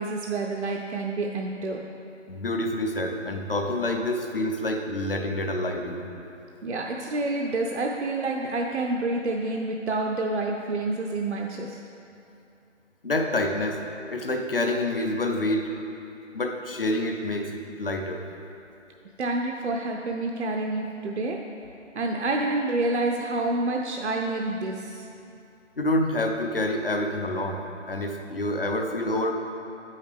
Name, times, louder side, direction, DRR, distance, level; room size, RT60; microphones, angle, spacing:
voice 1, 0.0-1.8 6.6-11.8 19.2-21.4 21.9-25.0, right 2 dB, 65° right, 1 dB, 0.5 m, -28 dB
voice 2, 2.3-6.0 13.0-13.8 14.1-15.7 16.3-18.3 25.8-29.3, left 1 dB, 50° left, 4 dB, 0.6 m, -27 dB
8.1 x 5.6 x 3.4 m, 2.6 s
hypercardioid pair, 180°, 38 cm